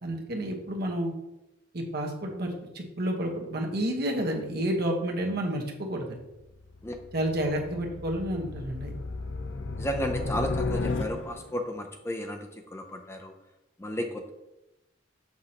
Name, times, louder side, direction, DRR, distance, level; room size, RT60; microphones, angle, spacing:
voice 1, 0.0-1.1 1.7-6.2 7.1-8.9, right 1 dB, 50° right, 0 dB, 1.1 m, -30 dB
sound 1, 6.3-11.6, left 3 dB, 70° left, 0.5 m, -34 dB
voice 2, 9.8-12.4 12.7-13.3 13.8-14.3, equal, 15° left, 4 dB, 0.4 m, -33 dB
6.3 x 5.9 x 2.9 m, 0.96 s
head